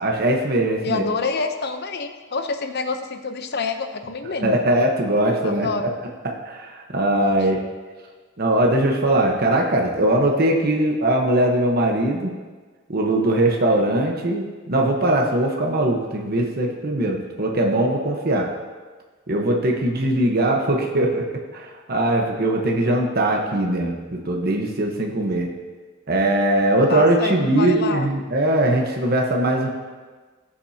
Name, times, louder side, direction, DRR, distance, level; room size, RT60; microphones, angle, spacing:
voice 1, 0.0-1.0 4.4-5.9 6.2-7.6 8.4-12.3 12.9-18.5 19.3-25.5 26.1-29.7, right 1 dB, 50° right, 0 dB, 1.1 m, -21 dB
voice 2, 0.8-4.6 5.4-5.9 7.2-7.4 22.6-23.0 26.9-28.1, left 4 dB, 55° left, 7 dB, 0.8 m, -27 dB
18.0 x 7.3 x 2.8 m, 1.4 s
head